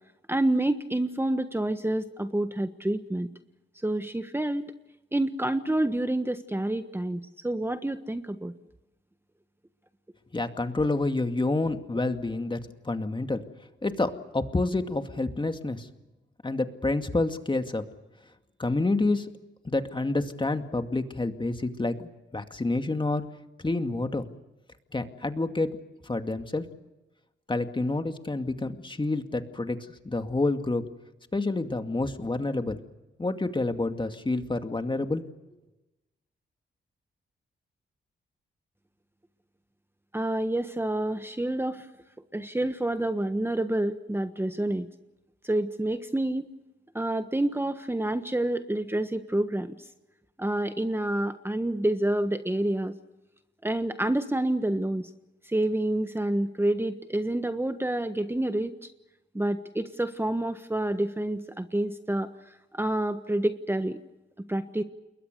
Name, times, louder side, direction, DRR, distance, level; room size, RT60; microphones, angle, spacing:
voice 1, 0.3-3.3 3.8-4.7 5.1-8.5 40.1-41.9 42.3-44.9 45.4-46.5 46.9-49.7 50.4-52.9 53.6-55.1 55.5-58.7 59.3-62.3 62.7-64.0 64.5-64.8, right 1 dB, 10° right, 9 dB, 1.4 m, -28 dB
voice 2, 10.3-12.6 12.8-13.4 13.8-15.9 16.4-17.8 18.6-19.3 19.6-23.3 23.6-24.3 24.9-25.7 26.0-26.7 27.5-29.8 30.0-30.8 31.3-32.8 33.2-35.2, left 2 dB, 25° left, 7 dB, 2.3 m, -28 dB
28.5 x 22.0 x 6.8 m, 1.0 s
cardioid pair, 65°, 20 cm